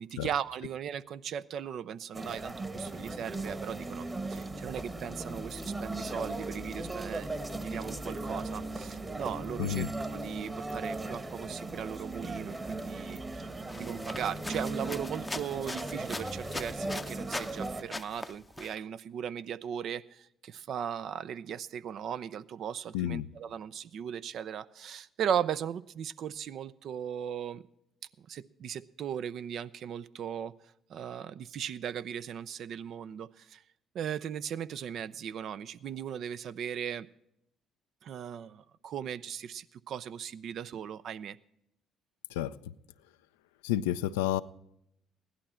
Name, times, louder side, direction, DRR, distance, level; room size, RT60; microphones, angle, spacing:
voice 1, 0.0-7.4 7.6-9.9 10.1-13.5 13.8-27.6 28.2-30.5 30.9-33.6 33.9-37.1 38.0-41.4, right 8 dB, 65° right, 0.5 m, -37 dB
sound 1, 2.1-17.8, right 2 dB, 25° right, 1.3 m, -38 dB
sound 2, 13.7-17.6 17.9-18.7, left 2 dB, 20° left, 0.6 m, -41 dB
voice 2, 22.9-23.3 42.3-42.7 43.6-44.4, left 12 dB, 90° left, 0.4 m, -30 dB
16.0 x 11.5 x 4.3 m
hypercardioid pair, 60°, 0 cm